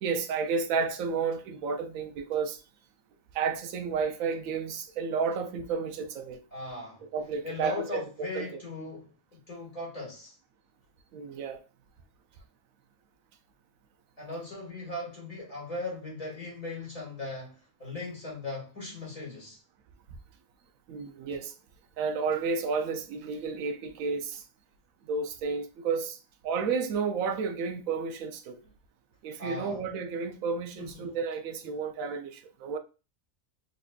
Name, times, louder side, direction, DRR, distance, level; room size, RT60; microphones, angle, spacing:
voice 1, 0.0-2.6 3.3-6.4 7.1-8.5 11.1-11.6 20.9-21.5 22.0-24.4 25.1-26.2 26.4-28.6 29.2-32.8, right 5 dB, 85° right, 1.0 m, -31 dB
voice 2, 6.5-7.0 7.4-9.1 9.5-10.4 14.2-19.6 29.4-29.8 30.8-31.1 31.6-31.8, left 2 dB, 25° left, 1.7 m, -38 dB
3.9 x 3.0 x 2.3 m
omnidirectional pair, 1.4 m